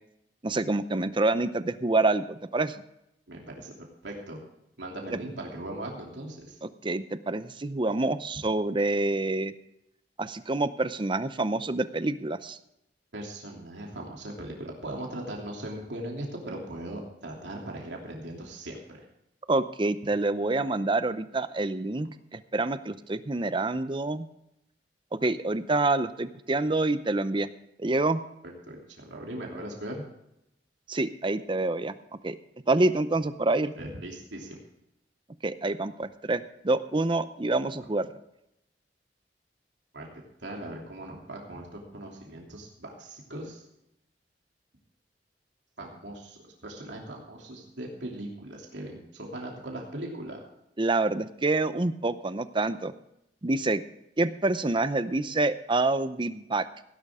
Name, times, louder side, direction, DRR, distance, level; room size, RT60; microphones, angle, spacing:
voice 1, 0.4-2.8 5.1-5.2 6.8-9.5 10.2-12.6 19.5-24.3 25.1-27.5 27.8-28.2 30.9-31.9 32.2-32.4 32.7-33.7 35.4-38.1 50.8-52.9 53.4-53.8 54.2-56.7, right 2 dB, 30° right, 13 dB, 0.6 m, -27 dB
voice 2, 3.3-3.7 4.0-4.4 4.8-6.6 13.1-19.0 28.4-30.0 33.8-34.6 39.9-43.6 45.8-50.4, right 1 dB, 85° right, -1 dB, 3.0 m, -39 dB
17.0 x 11.0 x 3.6 m, 0.82 s
head